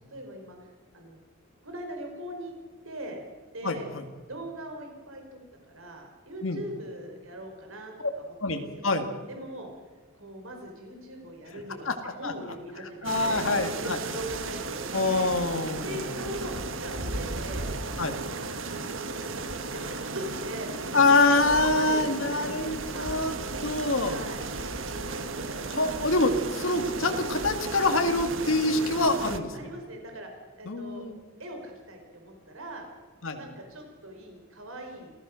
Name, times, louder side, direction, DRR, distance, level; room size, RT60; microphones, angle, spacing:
voice 1, 0.1-1.2 1.6-2.5 2.8-3.2 3.5-3.9 4.2-5.4 5.7-8.2 8.5-8.9 9.3-9.7 10.1-15.3 15.8-17.7 18.3-23.1 24.0-24.5 29.5-30.3 30.6-31.0 31.4-32.9 33.3-35.1, right 1 dB, 80° right, 3 dB, 4.7 m, -41 dB
voice 2, 3.6-4.0 6.4-6.6 8.0-8.1 8.4-9.1 11.9-12.3 13.0-14.0 14.9-16.0 18.0-18.1 20.9-23.4 23.6-24.2 25.7-29.5 30.7-31.2 33.2-33.4, left 2 dB, 80° left, 5 dB, 2.2 m, -25 dB
sound 1, 13.0-29.4, right 3 dB, 65° right, 1.5 m, -35 dB
28.5 x 16.0 x 6.4 m, 1.4 s
head